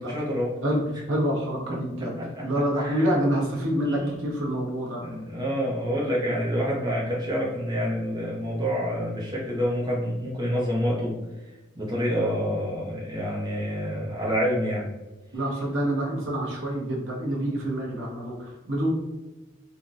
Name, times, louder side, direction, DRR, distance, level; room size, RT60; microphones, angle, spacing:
voice 1, 0.0-0.5 0.9-1.0 1.7-2.5 2.8-3.1 3.9-4.4 5.0-11.2 11.8-14.9, equal, 20° right, -4 dB, 0.6 m, -28 dB
voice 2, 1.1-2.1 2.4-5.0 15.3-18.9, right 1 dB, 75° right, -3 dB, 1.0 m, -27 dB
3.8 x 2.2 x 2.5 m, 1.1 s
head